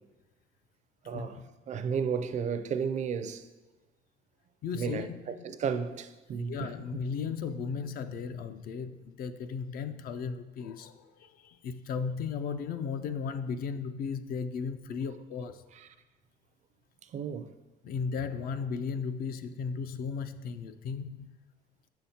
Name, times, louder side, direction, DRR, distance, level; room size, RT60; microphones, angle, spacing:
voice 1, 1.1-1.4 1.7-3.5 4.7-6.7 15.7-15.9 17.1-17.5, right 6 dB, 45° right, 0.4 m, -33 dB
voice 2, 4.6-5.2 6.5-15.6 17.8-21.3, left 5 dB, 60° left, 0.4 m, -35 dB
6.4 x 5.7 x 2.8 m
cardioid pair, 110°, 17 cm